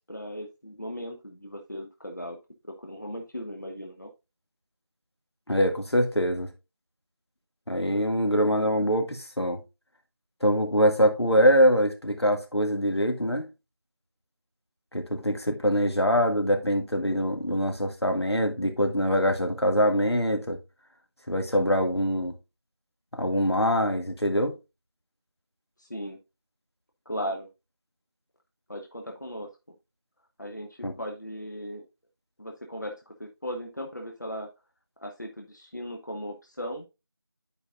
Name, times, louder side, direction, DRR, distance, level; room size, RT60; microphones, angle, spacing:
voice 1, 0.0-2.4 2.6-4.1 25.8-26.2 27.1-27.5 28.7-29.5 30.4-31.8 32.4-34.5 35.0-36.9, equal, 45° left, 0.9 m, -37 dB
voice 2, 5.5-6.5 7.7-9.6 10.4-13.5 14.9-20.6 21.3-22.3 23.1-24.5 30.8-30.9, equal, 85° left, 2.0 m, -24 dB
11.0 x 4.9 x 2.4 m
figure-of-eight pair, 180°, 13 cm